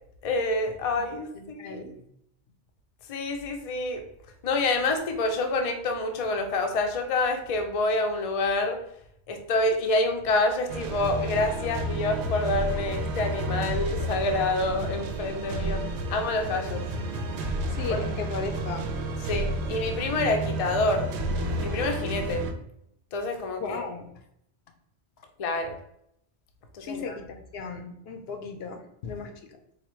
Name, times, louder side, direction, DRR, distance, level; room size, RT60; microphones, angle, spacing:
voice 1, 0.2-1.9 3.1-4.0 4.4-8.8 9.3-15.8 16.1-16.8 17.9-18.0 19.3-21.1 21.6-22.4 23.1-23.8 25.4-25.8 26.7-27.2, left 2 dB, 45° left, 4 dB, 0.5 m, -27 dB
voice 2, 1.3-1.9 17.8-18.9 23.6-24.0 26.8-27.3 27.5-29.6, left 4 dB, 70° left, 5 dB, 0.8 m, -36 dB
sound 1, 10.7-22.5, right 1 dB, 75° right, 0.8 m, -31 dB
4.1 x 2.1 x 4.3 m, 0.74 s
omnidirectional pair, 1.1 m